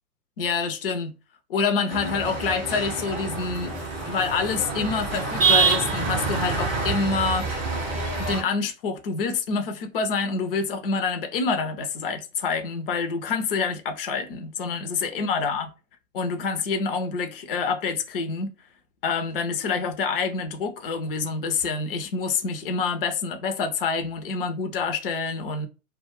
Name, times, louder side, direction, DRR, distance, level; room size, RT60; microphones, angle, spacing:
voice 1, 0.4-1.2 1.5-3.7 4.0-7.5 8.2-15.7 16.1-18.5 19.0-25.7, left 5 dB, 40° left, 0.5 m, -27 dB
sound 1, 1.9-8.4, right 4 dB, 15° right, 0.5 m, -26 dB
2.2 x 2.1 x 3.1 m
hypercardioid pair, 130°, 48 cm